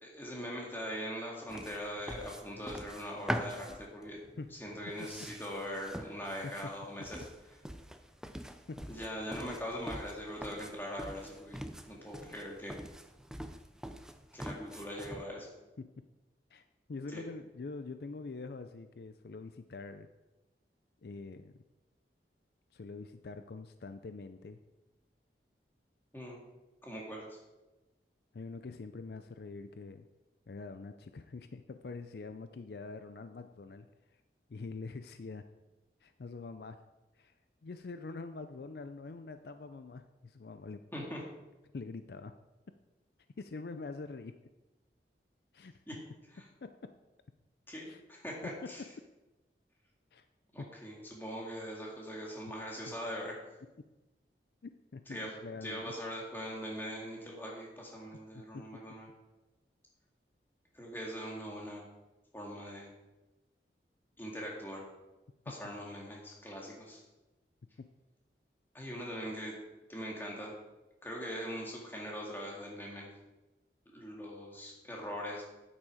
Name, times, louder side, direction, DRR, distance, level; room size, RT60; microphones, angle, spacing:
voice 1, 0.0-4.2 4.6-7.2 8.9-11.6 11.9-12.8 14.3-15.5 17.1-17.2 26.1-26.4 26.8-27.4 40.9-41.2 45.9-46.0 46.3-46.5 47.7-48.8 50.5-53.4 55.1-55.3 55.6-59.1 60.7-61.9 62.3-62.9 64.2-64.9 65.5-67.0 68.7-69.6 69.9-70.5 71.0-73.1 73.9-75.4, equal, 10° left, -2 dB, 2.2 m, -41 dB
sound 1, 1.5-15.2, equal, 5° right, 0.4 m, -44 dB
voice 2, 16.9-20.1 21.0-21.6 22.7-24.6 28.3-30.1 30.5-33.9 34.5-35.4 36.0-36.8 37.2-37.3 37.6-40.8 41.7-42.3 43.4-44.3 45.5-45.7 46.6-46.7 47.9-48.0 50.1-50.3 50.6-50.7 54.6-55.8 58.3-58.7, left 3 dB, 60° left, 9 dB, 0.4 m, -44 dB
9.0 x 8.4 x 4.9 m, 1.1 s
head